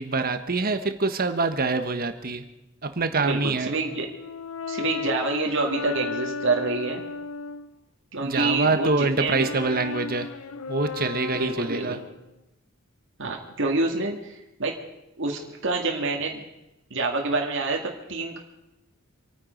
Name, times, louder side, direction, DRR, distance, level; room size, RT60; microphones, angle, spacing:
voice 1, 0.0-2.5 2.8-3.7 8.2-10.3 10.7-12.0, right 3 dB, 45° right, 8 dB, 1.3 m, -25 dB
voice 2, 3.2-4.1 4.7-7.0 8.1-9.5 11.3-12.0 13.2-14.8 15.2-16.4 16.9-18.4, right 3 dB, 65° right, 1 dB, 2.1 m, -27 dB
Brass instrument, 3.7-7.7 8.2-12.3, left 4 dB, 75° left, 0.7 m, -35 dB
27.0 x 9.5 x 5.2 m, 0.93 s
head